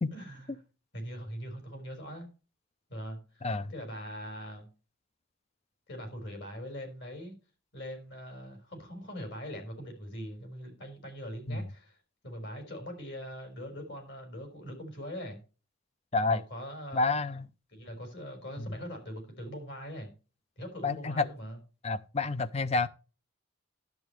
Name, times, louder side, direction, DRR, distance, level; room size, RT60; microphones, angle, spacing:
voice 1, 0.1-0.5 0.9-2.3 2.9-4.7 5.9-7.3 7.7-12.0 12.2-15.4 16.2-17.1 17.7-20.1 20.6-21.6, equal, 55° left, 4.3 m, -42 dB
voice 2, 3.4-3.7 11.5-11.6 16.1-16.4 16.9-17.5 18.6-18.7 20.8-21.2 21.8-22.9, left 3 dB, 30° left, 0.5 m, -29 dB
11.0 x 8.2 x 3.2 m
head